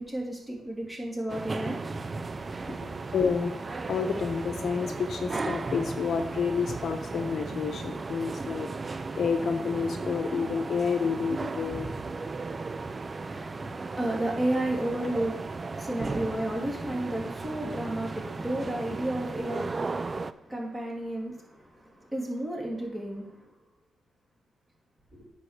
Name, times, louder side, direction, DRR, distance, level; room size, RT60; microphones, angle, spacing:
voice 1, 0.0-1.8 2.6-2.9 13.2-23.5 25.1-25.3, right 1 dB, 10° right, -2 dB, 3.0 m, -33 dB
sound 1, 1.3-20.3, right 3 dB, 30° right, 0.5 m, -35 dB
voice 2, 3.1-11.9, left 5 dB, 55° left, 6 dB, 1.0 m, -29 dB
9.0 x 5.3 x 6.7 m, 0.83 s
cardioid pair, 100°, 0 cm